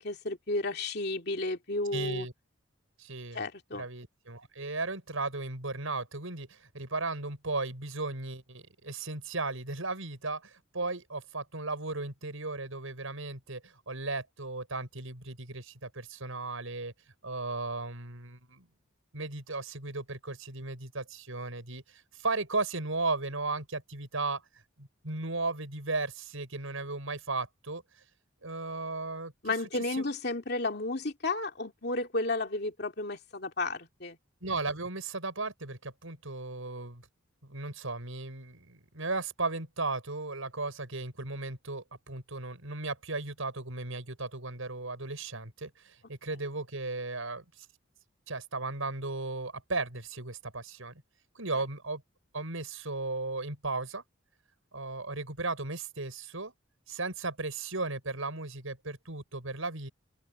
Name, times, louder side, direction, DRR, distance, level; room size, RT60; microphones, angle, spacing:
voice 1, 0.0-2.3 3.3-3.9 29.4-34.2 51.5-51.6, left 2 dB, 50° left, 2.7 m, -32 dB
voice 2, 1.9-2.3 3.0-3.4 3.7-16.9 17.2-18.7 19.1-24.4 24.8-27.8 28.4-30.1 34.4-37.0 37.4-47.7 48.3-51.0 51.3-52.0 52.3-54.0 54.7-56.5 56.9-59.9, right 3 dB, 85° right, 6.1 m, -36 dB
open air
head